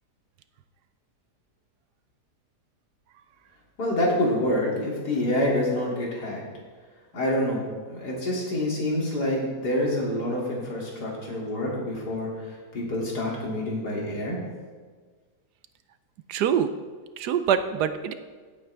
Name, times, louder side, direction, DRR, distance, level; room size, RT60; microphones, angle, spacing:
voice 1, 3.8-6.4 7.1-7.6 7.9-14.4, left 1 dB, 70° left, -3 dB, 3.3 m, -27 dB
voice 2, 16.3-16.7 17.2-18.1, right 8 dB, 80° right, 11 dB, 1.2 m, -24 dB
17.0 x 8.5 x 3.4 m, 1.5 s
omnidirectional pair, 1.8 m